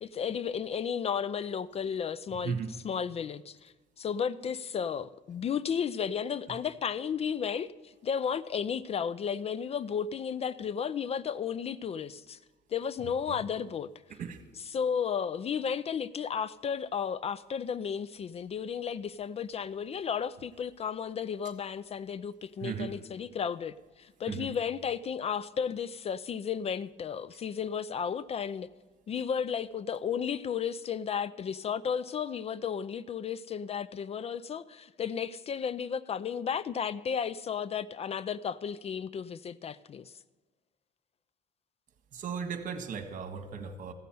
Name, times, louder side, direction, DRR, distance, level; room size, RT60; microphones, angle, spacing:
voice 1, 0.0-2.6 2.8-12.4 12.7-13.9 14.7-28.7 29.1-40.1, left 7 dB, 35° left, 0.4 m, -33 dB
voice 2, 13.0-13.4 14.1-14.4 22.6-22.9 24.3-24.5 42.1-43.9, right 6 dB, 50° right, 1.6 m, -36 dB
15.0 x 6.7 x 9.2 m
cardioid pair, 110°, 17 cm